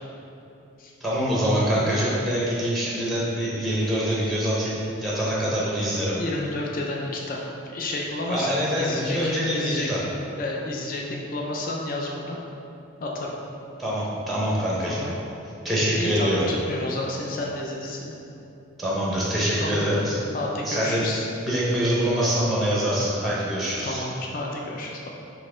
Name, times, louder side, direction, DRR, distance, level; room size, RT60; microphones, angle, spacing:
voice 1, 1.0-6.2 8.3-10.0 13.8-15.0 15.6-16.4 18.8-20.2 20.6-21.1 21.4-24.0, equal, ahead, -6 dB, 0.6 m, -24 dB
voice 2, 6.2-7.4 7.6-10.0 10.4-12.4 13.0-13.3 14.9-15.1 15.9-18.1 19.6-19.8 20.3-21.3 23.8-25.1, left 2 dB, 40° left, -1 dB, 0.4 m, -31 dB
4.0 x 2.8 x 3.7 m, 2.8 s
head